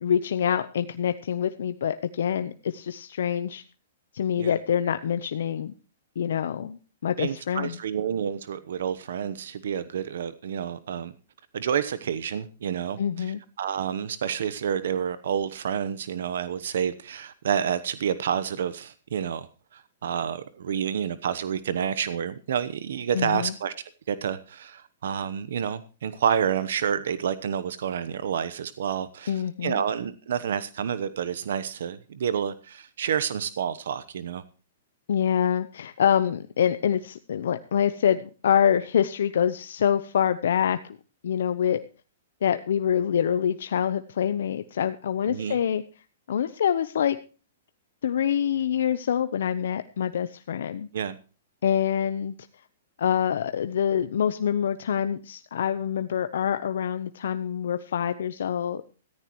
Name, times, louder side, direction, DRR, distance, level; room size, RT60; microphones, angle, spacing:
voice 1, 0.0-3.6 4.1-5.7 6.2-7.7 13.0-13.4 23.1-23.5 29.3-29.8 35.1-41.0 41.2-41.8 42.4-45.8 46.3-47.2 48.0-50.9 51.6-52.3 53.0-58.8, left 8 dB, 75° left, 10 dB, 0.8 m, -25 dB
voice 2, 7.2-11.1 11.5-19.5 19.7-23.7 24.1-34.4 45.3-45.6 50.9-51.2, right 8 dB, 75° right, 14 dB, 1.0 m, -29 dB
16.5 x 14.5 x 3.1 m, 0.35 s
hypercardioid pair, 155°, 0 cm